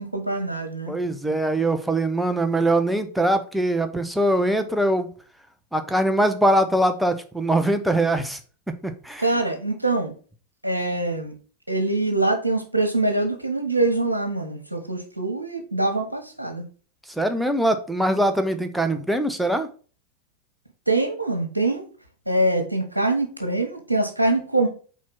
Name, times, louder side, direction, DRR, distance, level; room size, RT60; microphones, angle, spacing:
voice 1, 0.0-0.9 9.2-10.1 10.6-11.3 11.7-16.6 20.9-21.8 22.3-24.7, right 2 dB, 85° right, 4 dB, 1.2 m, -24 dB
voice 2, 0.9-5.1 5.7-8.4 8.8-9.3 17.1-19.7, right 1 dB, ahead, 7 dB, 0.8 m, -22 dB
4.5 x 4.3 x 5.8 m, 0.39 s
figure-of-eight pair, 90°, 0 cm